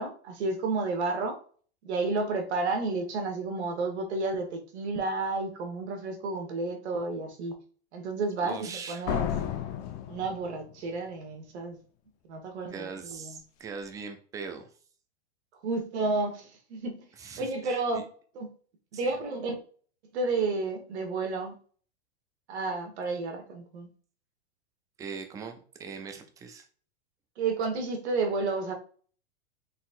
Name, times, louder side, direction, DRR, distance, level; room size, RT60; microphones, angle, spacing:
voice 1, 0.0-1.4 1.8-7.5 7.9-9.3 10.1-11.8 12.3-13.4 15.6-17.0 17.4-18.1 18.3-18.5 18.9-19.5 20.1-21.5 22.5-23.9 27.4-28.7, right 3 dB, 75° right, 1.4 m, -31 dB
voice 2, 8.4-9.1 12.7-14.7 17.2-18.1 18.9-19.1 25.0-26.7, right 5 dB, 10° right, 0.3 m, -41 dB
Slam, 9.1-11.0, left 9 dB, 40° left, 0.6 m, -32 dB
4.1 x 4.0 x 2.5 m
supercardioid pair, 135°, 34 cm